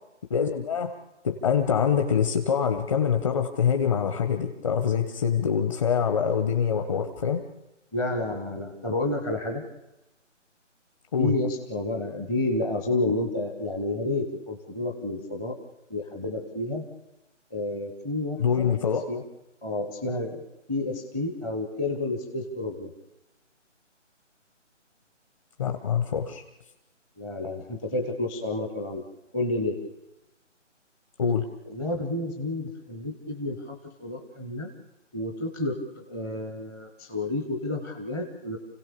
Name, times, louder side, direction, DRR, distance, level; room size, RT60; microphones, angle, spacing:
voice 1, 0.3-1.0 1.2-7.4 11.1-11.3 18.4-19.1 25.6-26.4 31.2-31.5, left 7 dB, 25° left, 6 dB, 1.4 m, -25 dB
voice 2, 7.9-9.6 11.2-15.6 15.9-16.9 17.5-18.7 19.1-19.2 19.6-20.4 20.7-22.9 27.2-29.0 29.3-29.8 31.7-34.7 35.1-38.6, left 2 dB, 5° left, 4 dB, 0.9 m, -30 dB
29.0 x 17.0 x 6.9 m, 0.98 s
figure-of-eight pair, 155°, 37 cm